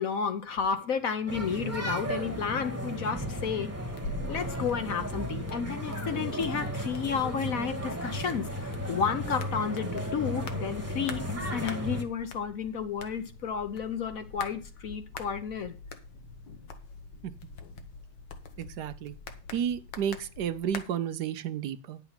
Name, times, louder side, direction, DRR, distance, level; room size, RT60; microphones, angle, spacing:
voice 1, 0.0-3.7 4.3-15.8, left 6 dB, 55° left, 1.1 m, -32 dB
sound 1, 1.3-12.0, equal, 10° right, 1.3 m, -35 dB
sound 2, 3.9-20.8, left 4 dB, 80° left, 1.9 m, -45 dB
voice 2, 18.6-19.1 19.5-22.0, right 9 dB, 70° right, 1.2 m, -32 dB
9.9 x 7.0 x 5.7 m
omnidirectional pair, 1.9 m